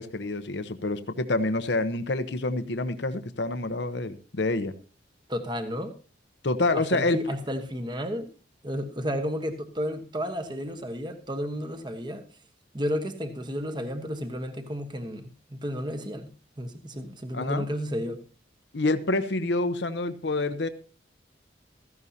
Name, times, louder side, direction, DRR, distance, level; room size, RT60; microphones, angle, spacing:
voice 1, 0.0-4.7 6.4-7.2 17.3-17.6 18.7-20.7, left 2 dB, 70° left, 11 dB, 0.9 m, -27 dB
voice 2, 5.3-5.9 6.8-8.3 8.6-12.2 12.7-16.3 16.6-18.2, equal, 25° right, 8 dB, 1.3 m, -32 dB
16.0 x 14.0 x 2.8 m, 0.34 s
head